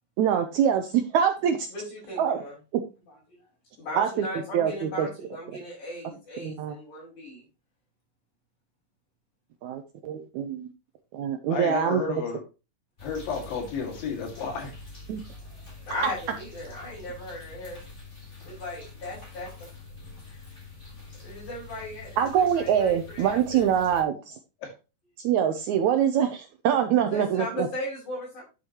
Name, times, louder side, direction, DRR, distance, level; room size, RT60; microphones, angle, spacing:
voice 1, 0.2-1.7 2.2-2.4 4.0-4.3 4.5-5.1 6.4-6.7 9.6-10.7 11.1-12.2 15.1-15.2 22.2-24.3 25.2-27.7, right 8 dB, 75° right, 7 dB, 1.8 m, -24 dB
voice 2, 1.7-2.6 3.1-3.2 3.8-7.4 11.4-11.5 15.9-17.8 18.4-19.7 20.2-20.5 21.2-23.7 27.0-28.4, left 1 dB, 60° left, -9 dB, 6.8 m, -37 dB
voice 3, 11.5-12.4 13.0-14.7 18.4-18.5 24.6-24.7, left 6 dB, 90° left, 2 dB, 4.0 m, -32 dB
sound 1, 13.0-24.0, left 3 dB, 20° left, 3.6 m, -45 dB
10.5 x 7.1 x 2.9 m, 0.29 s
omnidirectional pair, 4.0 m